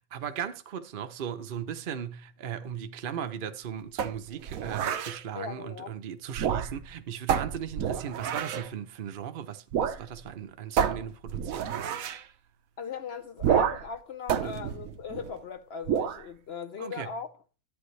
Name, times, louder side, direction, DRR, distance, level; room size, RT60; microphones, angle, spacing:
voice 1, 0.1-12.3 14.3-14.6 16.8-17.1, right 8 dB, 50° right, 0.8 m, -37 dB
sound 1, 4.0-5.2 6.3-6.9 7.3-8.7 9.7-10.0 10.3-10.4 10.8-12.2 13.4-13.9 14.3-15.4 15.8-16.2, right 8 dB, 80° right, 1.2 m, -29 dB
voice 2, 5.3-5.9 12.8-17.3, left 6 dB, 60° left, 0.8 m, -38 dB
12.0 x 8.9 x 3.2 m
omnidirectional pair, 1.4 m